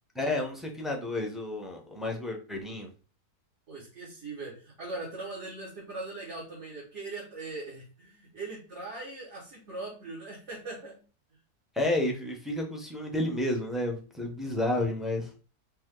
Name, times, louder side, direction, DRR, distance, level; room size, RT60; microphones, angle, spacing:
voice 1, 0.1-2.9 11.7-15.3, left 1 dB, ahead, 1 dB, 0.5 m, -31 dB
voice 2, 3.7-11.0, right 3 dB, 50° right, -7 dB, 1.9 m, -40 dB
5.4 x 2.5 x 3.7 m, 0.36 s
omnidirectional pair, 1.7 m